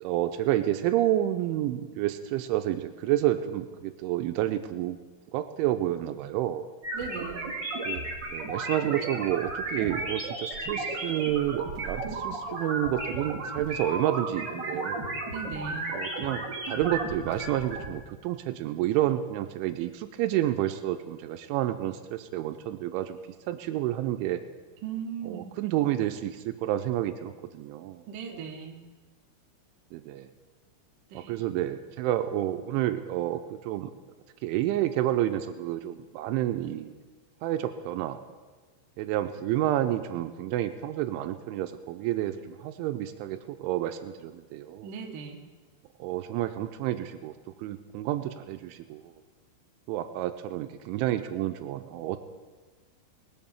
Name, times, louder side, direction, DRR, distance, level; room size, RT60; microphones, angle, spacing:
voice 1, 0.0-5.0 5.3-6.6 7.9-8.0 8.3-15.0 15.9-23.2 23.5-24.4 25.3-28.0 29.9-30.3 31.1-33.9 34.4-36.9 37.4-38.2 39.0-44.9 46.0-47.3 47.6-49.0 49.9-52.2, right 13 dB, 85° right, 8 dB, 3.1 m, -29 dB
sound 1, 6.8-17.9, right 2 dB, 40° right, 1.7 m, -34 dB
voice 2, 6.9-7.5 15.3-15.9 24.8-25.4 28.1-28.8 31.1-31.3 44.8-45.4, right 6 dB, 65° right, 1 dB, 2.3 m, -37 dB
19.5 x 7.7 x 7.1 m, 1.4 s
omnidirectional pair, 5.5 m